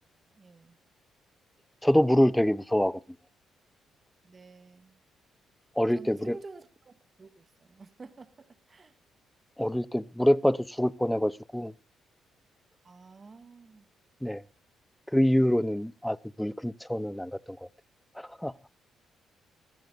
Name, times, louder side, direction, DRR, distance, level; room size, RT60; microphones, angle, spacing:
voice 1, 0.3-0.8 4.2-5.0 5.9-6.9 7.2-8.9 12.8-13.8, right 3 dB, 35° right, 1.8 m, -49 dB
voice 2, 1.8-3.0 5.8-6.4 9.6-11.7 14.2-14.4 15.1-17.6 18.2-18.5, equal, 5° left, 0.7 m, -25 dB
21.5 x 13.5 x 2.5 m
cardioid pair, 90°, 0 cm